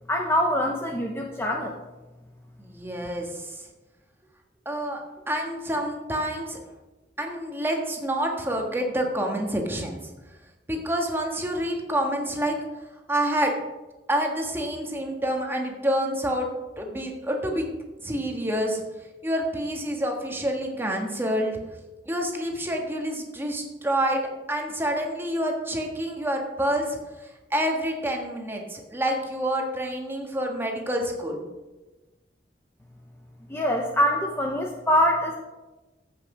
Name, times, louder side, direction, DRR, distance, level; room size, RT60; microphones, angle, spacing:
voice 1, 0.1-1.8 33.5-35.4, equal, 15° left, 1 dB, 0.8 m, -24 dB
voice 2, 2.6-3.6 4.6-5.0 5.3-6.6 7.2-10.0 10.7-12.5 13.1-13.5 14.1-16.5 16.8-17.7 18.0-18.8 19.2-21.6 22.0-27.0 27.2-31.4, right 1 dB, 15° right, 1 dB, 1.6 m, -28 dB
14.5 x 6.1 x 4.9 m, 1.1 s
head